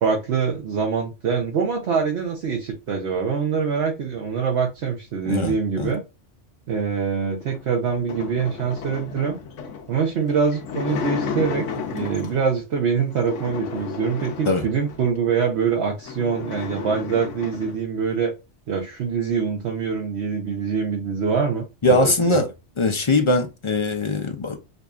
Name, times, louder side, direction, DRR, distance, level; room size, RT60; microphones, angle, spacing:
voice 1, 0.0-6.0 6.7-9.4 9.9-18.3 18.7-22.4, right 6 dB, 65° right, 1.0 m, -24 dB
voice 2, 5.3-5.9 14.5-14.6 21.8-22.5 22.8-24.6, left 2 dB, 40° left, 0.4 m, -21 dB
sound 1, 7.4-12.5 13.1-15.2 15.6-15.7 15.9-17.8, left 6 dB, 85° left, 1.0 m, -33 dB
4.9 x 2.4 x 2.4 m
omnidirectional pair, 1.2 m